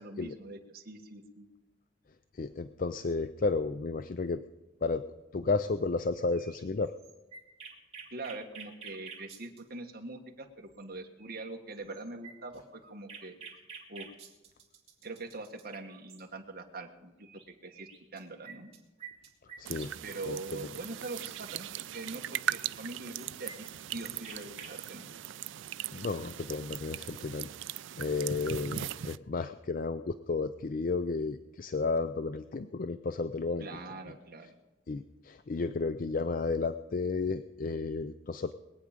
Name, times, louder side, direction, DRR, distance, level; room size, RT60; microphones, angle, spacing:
voice 1, 0.0-1.5 8.1-13.3 13.9-14.1 15.0-18.7 20.0-25.1 33.6-34.5, right 2 dB, 45° right, 2 dB, 1.6 m, -43 dB
voice 2, 2.3-4.4 4.8-5.0 5.3-6.9 19.6-19.9 20.3-20.6 25.9-27.5 28.0-33.7 34.9-38.5, left 4 dB, 40° left, 11 dB, 0.4 m, -32 dB
sound 1, 6.3-9.6 10.8-10.9 11.2-11.4 11.7-16.2 17.2-17.4 17.7-21.4 22.5-24.7, right 5 dB, 30° right, 2.9 m, -49 dB
sound 2, 19.7-29.2, right 11 dB, 65° right, 0.4 m, -39 dB
22.0 x 8.8 x 5.1 m, 1.1 s
head